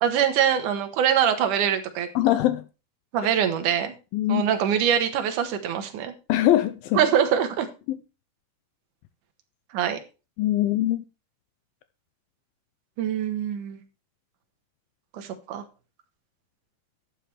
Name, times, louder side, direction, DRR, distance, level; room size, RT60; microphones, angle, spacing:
voice 1, 0.0-2.1 3.1-3.9 4.3-6.1 6.9-7.7 9.7-10.0 13.0-13.8 15.1-15.6, right 9 dB, 60° right, 2.5 m, -23 dB
voice 2, 2.2-2.7 4.1-4.4 6.3-7.0 7.9-8.0 10.4-11.0, left 14 dB, 80° left, 2.2 m, -22 dB
12.0 x 8.8 x 3.3 m
omnidirectional pair, 4.8 m